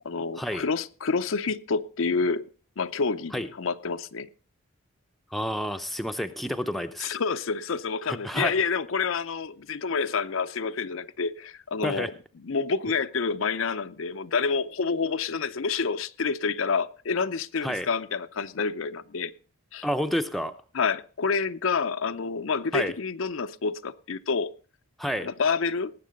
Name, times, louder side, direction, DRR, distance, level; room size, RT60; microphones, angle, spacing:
voice 1, 0.0-2.4 2.8-4.3 7.0-12.1 12.4-19.3 19.7-19.9 20.7-24.5 25.2-25.9, left 5 dB, 70° left, 0.6 m, -28 dB
voice 2, 5.3-7.2 8.1-8.5 11.8-12.1 17.6-17.9 19.8-20.5 22.7-22.9 25.0-25.3, equal, ahead, 0.6 m, -29 dB
18.5 x 7.7 x 5.2 m
head